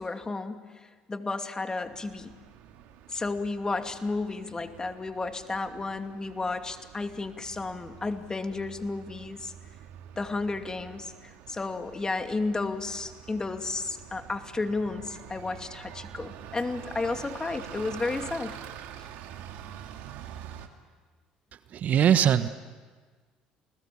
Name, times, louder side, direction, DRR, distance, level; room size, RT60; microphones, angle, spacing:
voice 1, 0.0-2.3 3.1-9.5 10.2-18.6, left 3 dB, 25° left, 6 dB, 2.5 m, -32 dB
Bus, 1.8-20.7, right 10 dB, 70° right, 2.3 m, -46 dB
voice 2, 21.7-22.5, right 9 dB, 55° right, 12 dB, 1.3 m, -21 dB
29.5 x 20.5 x 8.6 m, 1.5 s
hypercardioid pair, 65°, 3 cm